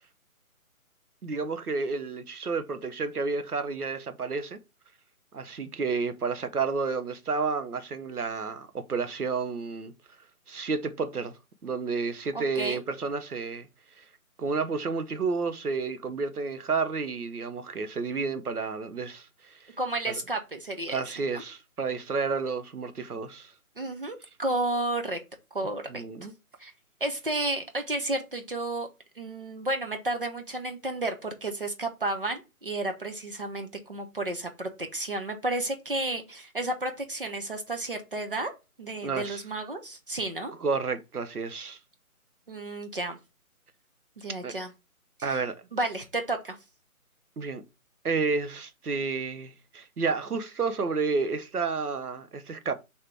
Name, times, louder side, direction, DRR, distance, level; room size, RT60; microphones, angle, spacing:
voice 1, 1.2-4.6 5.3-9.9 10.5-11.4 11.6-13.7 14.0-14.1 14.4-19.6 20.9-23.5 25.9-26.3 39.0-39.4 40.6-41.8 44.4-44.5 45.2-45.6 47.4-47.6 48.0-52.7, right 4 dB, 90° right, 0.7 m, -31 dB
voice 2, 12.3-12.8 19.8-21.0 21.3-21.4 23.8-25.2 25.5-26.0 26.6-26.7 27.0-28.9 29.2-38.5 38.8-40.5 42.5-43.2 44.2-44.7 45.2-45.4 45.7-46.6, right 2 dB, 40° right, 0.6 m, -32 dB
3.5 x 2.8 x 4.2 m
figure-of-eight pair, 150°, 43 cm